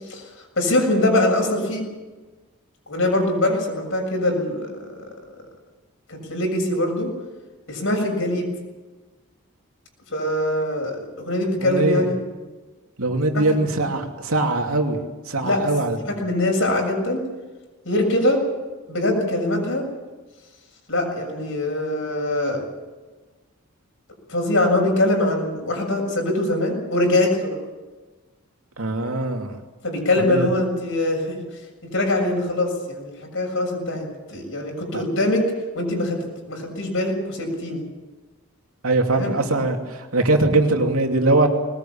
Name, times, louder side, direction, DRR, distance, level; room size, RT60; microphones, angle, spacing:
voice 1, 0.6-1.8 2.9-4.7 6.1-7.1 7.7-8.5 10.1-11.0 11.2-12.1 13.3-13.4 15.4-15.6 16.0-17.2 17.8-18.4 18.9-19.9 20.9-22.6 24.3-27.6 29.8-31.4 31.9-35.4 35.7-37.8 39.1-39.4, left 1 dB, 65° left, 2 dB, 6.9 m, -22 dB
voice 2, 11.6-12.1 13.0-15.0 15.3-16.0 28.8-29.6 30.2-30.5 34.9-35.0 38.8-41.5, right 2 dB, 75° right, 3 dB, 2.8 m, -21 dB
21.0 x 19.5 x 8.8 m, 1.3 s
head